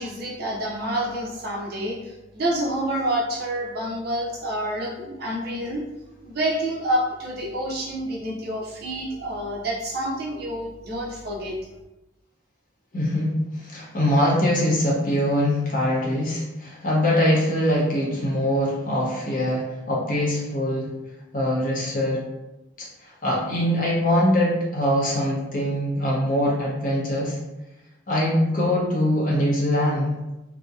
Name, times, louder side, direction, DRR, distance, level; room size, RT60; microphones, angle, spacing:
voice 1, 0.0-5.8 6.2-11.6, right 1 dB, 50° right, -2 dB, 0.5 m, -28 dB
voice 2, 12.9-20.9 21.3-22.2 23.0-27.4 28.1-30.1, left 1 dB, 40° left, -4 dB, 0.6 m, -23 dB
2.7 x 2.0 x 2.3 m, 1.0 s
head